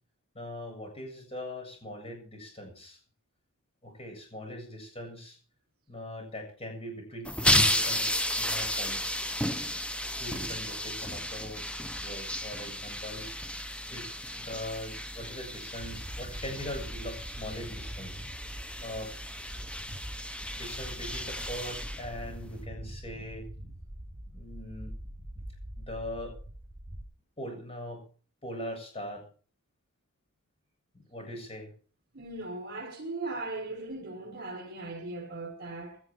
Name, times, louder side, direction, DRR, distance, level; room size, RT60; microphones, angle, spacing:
voice 1, 0.3-3.0 3.8-5.4 5.9-8.1 8.4-9.2 10.2-11.6 12.0-13.3 13.9-18.2 18.8-19.1 20.6-23.5 24.3-24.9 25.8-26.4 27.4-28.0 28.4-29.2 30.9-31.7, left 1 dB, 25° left, 7.4 m, -41 dB
sound 1, 7.2-22.6, left 1 dB, 5° left, 0.9 m, -33 dB
sound 2, 15.8-27.0, right 1 dB, 15° right, 5.2 m, -43 dB
voice 2, 32.1-36.0, right 2 dB, 45° right, 6.8 m, -38 dB
17.5 x 12.5 x 4.6 m
head